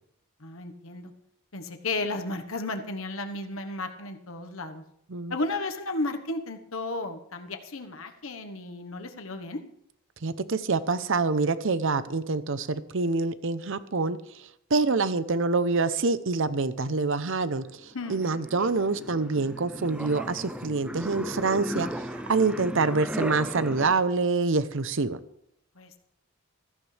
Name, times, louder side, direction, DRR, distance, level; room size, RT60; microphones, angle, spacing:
voice 1, 0.4-1.1 1.5-4.8 5.3-9.6 17.9-18.2 18.6-18.7 25.8-26.0, left 2 dB, 65° left, 6 dB, 1.3 m, -34 dB
voice 2, 10.2-14.2 14.7-25.2, right 3 dB, 60° right, 14 dB, 0.8 m, -26 dB
sound 1, 17.5-23.9, right 1 dB, 5° right, 0.5 m, -36 dB
16.0 x 14.5 x 3.4 m, 0.75 s
head